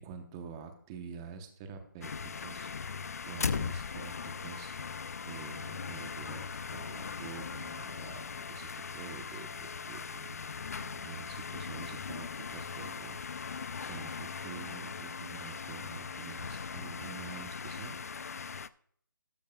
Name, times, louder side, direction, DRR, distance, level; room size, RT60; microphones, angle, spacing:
voice 1, 0.0-4.7 5.2-10.4 10.8-18.0, right 6 dB, 15° right, 7 dB, 0.8 m, -47 dB
sound 1, 2.0-18.7, left 5 dB, 45° left, 0.4 m, -39 dB
13.0 x 12.0 x 2.2 m, 0.64 s
hypercardioid pair, 170°, 11 cm